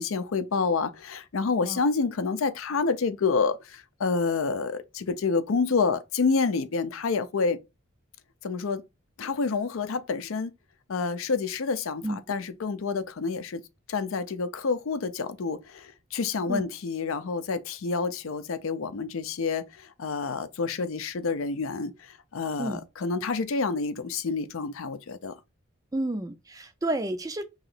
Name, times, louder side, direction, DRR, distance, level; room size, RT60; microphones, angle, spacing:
voice 1, 0.0-7.6 8.4-8.8 9.2-10.5 10.9-12.0 12.3-13.6 13.9-19.6 20.0-21.9 22.3-25.3, left 4 dB, 80° left, 0.5 m, -28 dB
voice 2, 25.9-27.4, right 1 dB, 15° right, 0.4 m, -30 dB
3.1 x 2.9 x 3.9 m
head